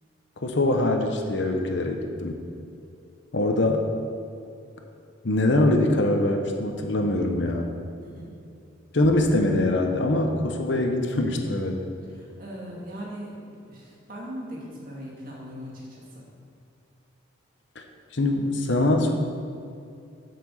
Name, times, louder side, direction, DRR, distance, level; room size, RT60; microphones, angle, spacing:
voice 1, 0.4-2.4 3.3-3.8 5.2-7.7 8.9-11.8 18.1-19.1, left 1 dB, 65° left, 4 dB, 0.9 m, -23 dB
voice 2, 8.0-8.3 12.1-16.3, equal, 45° right, -5 dB, 2.5 m, -39 dB
7.6 x 6.0 x 7.1 m, 2.5 s
head